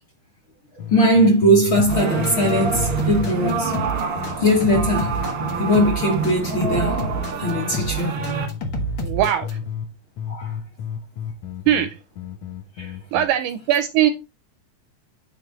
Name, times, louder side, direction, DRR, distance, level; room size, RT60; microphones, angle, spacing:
sound 1, 0.8-7.9 8.2-9.9 10.2-13.3, left 8 dB, 70° left, 1.8 m, -33 dB
voice 1, 0.9-3.7 4.4-5.2 5.6-7.1 7.4-8.3 10.3-10.5 12.8-12.9, equal, 50° left, 1.6 m, -19 dB
sound 2, 1.7-9.5, right 2 dB, 85° left, 1.0 m, -28 dB
sound 3, 1.9-8.5, right 5 dB, 65° right, 1.3 m, -27 dB
voice 2, 9.0-9.5 11.7-12.0 13.1-14.1, right 11 dB, 80° right, 1.9 m, -20 dB
9.3 x 3.6 x 3.8 m
omnidirectional pair, 4.1 m